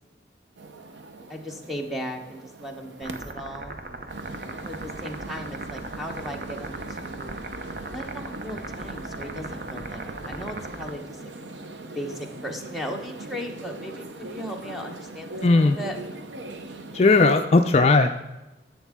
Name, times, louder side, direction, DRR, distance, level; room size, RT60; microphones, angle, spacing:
sound 1, 0.6-3.3 4.1-17.5, right 2 dB, 90° right, 0.8 m, -40 dB
voice 1, 1.3-3.8 4.7-7.4 7.9-11.2 11.9-15.9, equal, ahead, 2 dB, 1.0 m, -37 dB
sound 2, 3.0-10.9, right 2 dB, 50° right, 0.7 m, -38 dB
voice 2, 15.4-15.8 16.9-18.1, left 3 dB, 35° left, 6 dB, 0.4 m, -17 dB
11.0 x 7.3 x 3.6 m, 1.1 s
head